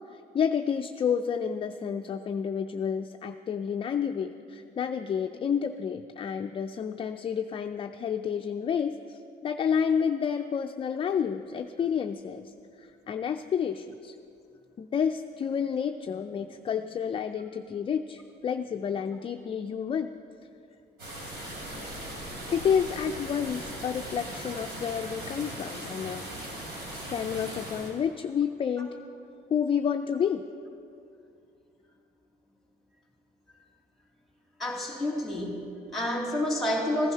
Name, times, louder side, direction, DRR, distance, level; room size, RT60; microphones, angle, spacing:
voice 1, 0.1-12.5 12.8-14.1 14.8-20.1 21.8-21.9 22.5-26.2 27.1-28.9 29.5-30.4, left 7 dB, 30° left, 7 dB, 0.4 m, -30 dB
sound 1, 21.0-27.9, right 1 dB, 80° right, 3.6 m, -39 dB
voice 2, 34.6-37.1, left 1 dB, ahead, -1 dB, 2.8 m, -29 dB
15.0 x 10.5 x 5.6 m, 2.6 s
cardioid pair, 110°, 17 cm